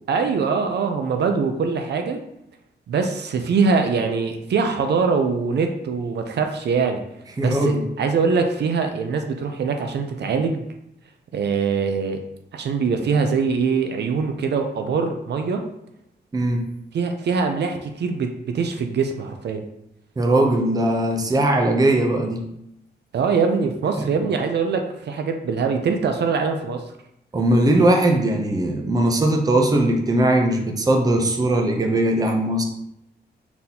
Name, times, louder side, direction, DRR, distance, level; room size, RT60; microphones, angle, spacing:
voice 1, 0.1-2.2 2.9-7.0 7.4-10.6 11.3-12.2 12.5-15.6 16.9-19.6 23.1-26.8, right 5 dB, 75° right, 5 dB, 0.5 m, -23 dB
voice 2, 7.4-7.9 16.3-16.7 20.2-22.4 27.3-32.6, right 1 dB, 20° right, 2 dB, 0.5 m, -19 dB
4.0 x 3.8 x 2.8 m, 0.80 s
wide cardioid pair, 155°, 18 cm